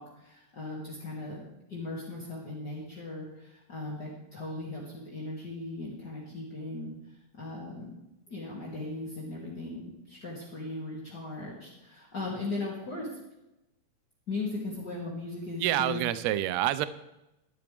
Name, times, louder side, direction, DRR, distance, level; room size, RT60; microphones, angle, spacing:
voice 1, 0.0-1.4 1.7-8.0 8.3-13.1 14.3-16.0, left 2 dB, 35° left, -6 dB, 2.7 m, -38 dB
voice 2, 15.6-16.9, right 13 dB, 85° right, 14 dB, 1.5 m, -27 dB
12.5 x 12.0 x 3.4 m, 0.92 s
omnidirectional pair, 3.7 m